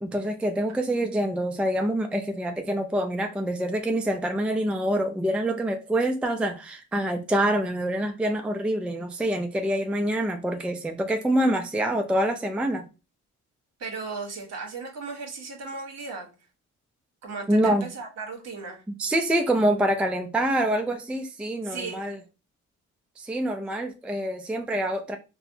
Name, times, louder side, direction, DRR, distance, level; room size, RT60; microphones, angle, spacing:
voice 1, 0.0-12.8 17.5-17.9 19.0-22.2 23.2-25.2, right 1 dB, 5° right, 0.4 m, -26 dB
voice 2, 13.8-16.3 17.2-18.8 21.6-22.0, right 4 dB, 60° right, 1.2 m, -36 dB
4.1 x 2.1 x 2.7 m
cardioid pair, 90°, 30 cm